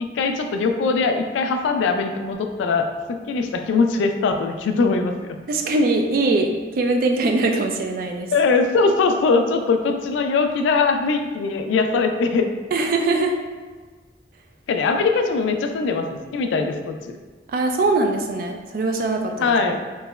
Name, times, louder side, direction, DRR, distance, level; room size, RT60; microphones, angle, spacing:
voice 1, 0.0-5.4 8.3-12.5 14.7-17.2 19.4-19.8, left 4 dB, 90° left, 6 dB, 0.3 m, -21 dB
voice 2, 5.5-8.3 12.7-13.4 17.5-19.5, right 2 dB, 50° right, 3 dB, 0.3 m, -21 dB
3.1 x 2.8 x 2.2 m, 1.4 s
head